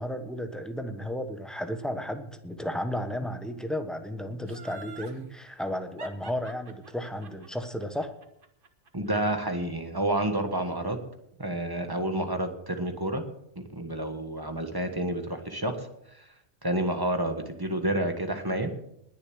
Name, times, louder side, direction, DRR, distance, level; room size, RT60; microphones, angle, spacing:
voice 1, 0.0-8.1, equal, ahead, 7 dB, 1.0 m, -33 dB
Laughter, 4.5-5.2 6.0-9.1 9.4-9.5, right 5 dB, 40° right, 1.4 m, -46 dB
voice 2, 8.9-11.0 11.4-13.2 13.5-16.3 16.6-18.7, right 1 dB, 15° right, 6 dB, 1.4 m, -29 dB
20.5 x 7.0 x 6.3 m, 0.76 s
omnidirectional pair, 1.4 m